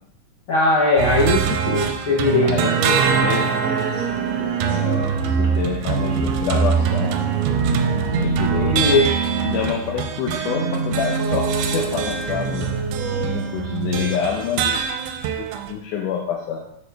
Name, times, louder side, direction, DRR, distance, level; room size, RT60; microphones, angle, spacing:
voice 1, 0.5-2.7 8.6-9.2, left 2 dB, 60° left, -5 dB, 1.5 m, -19 dB
sound 1, 1.0-15.7, right 7 dB, 85° right, 2.1 m, -24 dB
sound 2, 1.7-13.3, right 4 dB, 65° right, 2.0 m, -26 dB
voice 2, 2.4-3.6 4.6-7.4 8.2-8.8 9.4-11.5 11.7-12.7 13.3-14.8 15.4-16.6, left 7 dB, 85° left, -1 dB, 2.4 m, -27 dB
8.3 x 6.2 x 3.5 m, 0.74 s
omnidirectional pair, 3.6 m